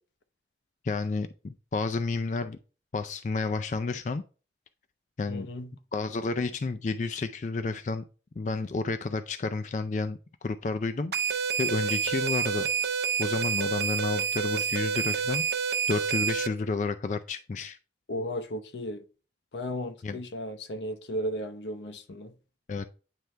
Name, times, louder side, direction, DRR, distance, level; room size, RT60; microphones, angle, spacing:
voice 1, 0.8-2.6 2.9-4.2 5.2-5.5 5.9-8.0 8.4-12.7 13.2-17.8 20.0-20.2 22.7-22.9, left 3 dB, 40° left, 0.3 m, -31 dB
voice 2, 5.3-5.8 18.1-19.0 19.5-22.3, equal, 85° left, 0.8 m, -35 dB
sound 1, 11.1-16.5, right 6 dB, 70° right, 0.6 m, -28 dB
9.0 x 3.4 x 3.3 m
head